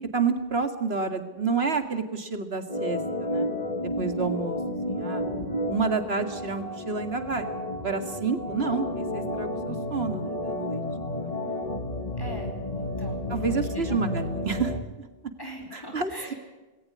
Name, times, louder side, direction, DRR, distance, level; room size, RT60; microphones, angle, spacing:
voice 1, 0.1-3.5 4.0-4.6 4.9-5.2 5.7-7.5 7.8-11.6 13.3-15.1 15.7-16.3, right 4 dB, 80° right, 8 dB, 2.3 m, -29 dB
Organ, 2.7-14.8, left 1 dB, 40° left, 2.0 m, -31 dB
voice 2, 12.2-14.1 15.4-16.3, right 1 dB, 20° left, 1 dB, 4.5 m, -42 dB
20.0 x 18.0 x 9.5 m, 1.1 s
omnidirectional pair, 1.0 m